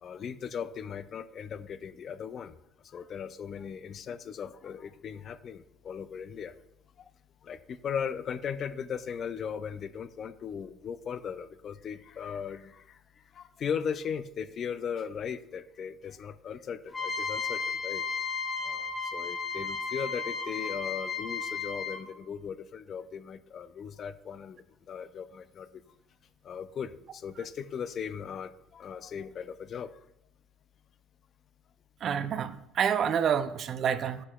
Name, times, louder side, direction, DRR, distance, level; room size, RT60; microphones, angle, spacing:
voice 1, 0.0-2.5 2.8-6.5 7.4-13.0 13.3-18.0 18.6-25.7 26.4-29.9, left 7 dB, 40° left, 0.3 m, -38 dB
sound 1, 16.9-22.2, left 5 dB, 15° left, 1.6 m, -34 dB
voice 2, 32.0-34.3, right 8 dB, 45° right, 0.3 m, -28 dB
7.6 x 6.2 x 2.2 m
cardioid pair, 115°, 0 cm